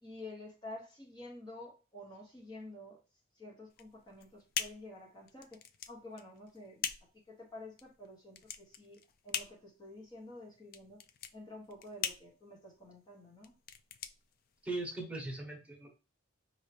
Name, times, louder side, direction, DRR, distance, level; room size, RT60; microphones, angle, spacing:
voice 1, 0.0-3.0 3.4-6.9 7.1-11.0 11.3-13.5, left 2 dB, 25° left, 0.9 m, -50 dB
sound 1, 3.7-15.0, left 8 dB, 50° left, 0.4 m, -43 dB
voice 2, 14.6-16.0, right 2 dB, 5° right, 1.1 m, -39 dB
5.5 x 2.7 x 3.3 m
head